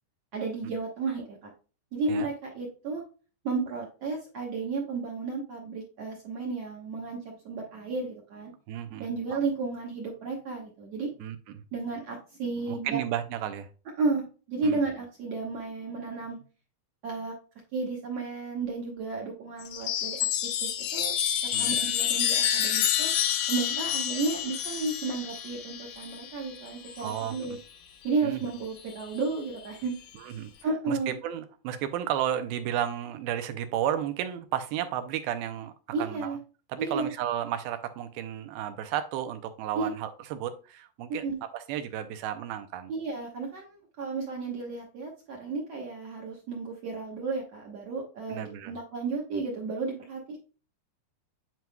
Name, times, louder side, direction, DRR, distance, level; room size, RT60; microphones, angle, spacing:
voice 1, 0.3-1.5 1.9-3.0 3.4-8.5 9.0-11.1 11.7-13.0 14.0-16.4 17.0-17.3 17.7-21.1 21.4-23.1 23.5-27.6 28.0-30.0 30.6-31.2 35.9-36.4 36.8-37.1 39.7-39.9 41.2-41.4 42.9-50.4, right 4 dB, 60° right, 1.8 m, -33 dB
voice 2, 8.7-9.1 11.2-11.4 12.7-13.7 14.6-14.8 21.5-21.8 27.0-27.6 28.2-28.4 30.2-30.5 30.9-35.7 36.0-36.4 36.7-41.2 41.5-42.9 48.3-48.7, right 10 dB, 80° right, 2.4 m, -33 dB
Chime, 19.6-27.4 28.7-29.3, left 9 dB, 80° left, 2.9 m, -29 dB
9.3 x 4.5 x 2.2 m
omnidirectional pair, 4.5 m